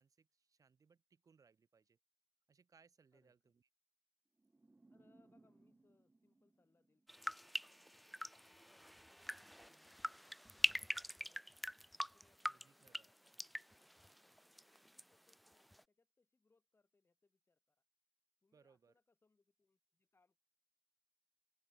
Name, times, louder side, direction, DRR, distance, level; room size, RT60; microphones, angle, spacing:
voice 1, 0.0-2.0 2.5-3.7 10.6-10.9 12.5-13.1 18.5-18.9, right 5 dB, 65° right, 6.6 m, -70 dB
voice 2, 3.1-3.6 4.9-11.7 11.9-17.8 18.4-20.4, left 3 dB, 40° left, 3.5 m, -78 dB
sound 1, 4.4-7.5, right 2 dB, 25° right, 1.4 m, -69 dB
sound 2, 7.1-15.0 15.3-15.8, equal, ahead, 0.3 m, -44 dB
open air
wide cardioid pair, 105°, 6 cm